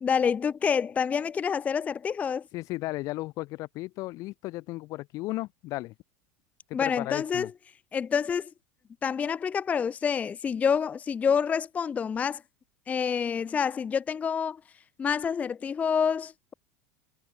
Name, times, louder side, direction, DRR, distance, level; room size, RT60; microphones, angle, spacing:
voice 1, 0.0-2.4 6.7-7.5 7.9-8.5 9.0-12.4 12.9-14.6 15.0-16.5, left 6 dB, 20° left, 0.5 m, -27 dB
voice 2, 2.5-5.9 6.7-7.5, left 19 dB, 45° left, 0.8 m, -35 dB
supercardioid pair, 135°, 8 cm